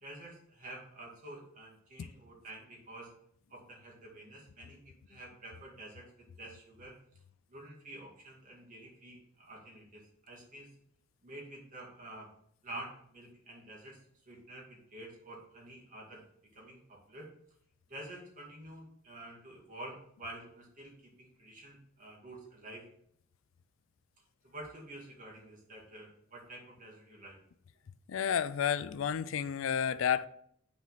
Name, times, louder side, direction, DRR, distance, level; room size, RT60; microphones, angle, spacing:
voice 1, 0.0-3.1 3.5-7.0 7.5-10.7 11.2-12.3 12.6-14.0 14.3-16.2 16.5-17.3 17.9-22.9 24.4-27.4, right 1 dB, 40° right, 2.2 m, -49 dB
voice 2, 28.1-30.3, left 8 dB, 75° left, 0.4 m, -31 dB
6.0 x 4.3 x 5.7 m
head